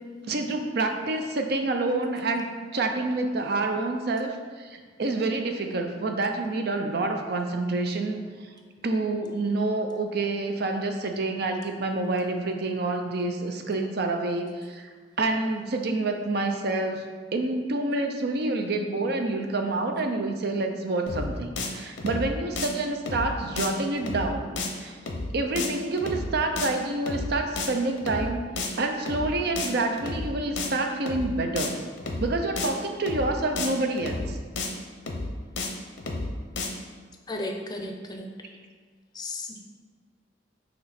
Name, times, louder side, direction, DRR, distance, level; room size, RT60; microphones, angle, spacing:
voice 1, 0.3-2.5 2.7-8.2 8.8-14.9 15.2-17.0 17.3-24.5 24.8-25.0 25.3-28.5 28.8-31.8 32.2-34.4, right 2 dB, 60° right, 5 dB, 0.6 m, -28 dB
sound 1, 21.1-21.3 21.6-21.7 22.0-22.3 22.6-22.7 23.1-23.3 23.6-23.7 24.0-24.3 24.6-24.7 25.1-25.3 25.6-25.7 26.0-26.3 26.6-26.7 27.1-27.3 27.6-27.7 28.0-28.3 28.6-28.7 29.1-29.3 29.6-29.7 30.0-30.3 30.6-30.7 31.1-31.3 31.6-31.7 32.0-32.3 32.6-32.7 33.1-33.3 33.6-33.7 34.0-34.3 34.6-34.7 35.1-35.3 35.6-35.7 36.0-36.3 36.6-36.7, left 3 dB, 90° left, 0.8 m, -31 dB
voice 2, 37.3-38.3 39.1-39.6, left 2 dB, 25° left, 2 dB, 0.5 m, -34 dB
7.4 x 3.1 x 4.1 m, 1.5 s
head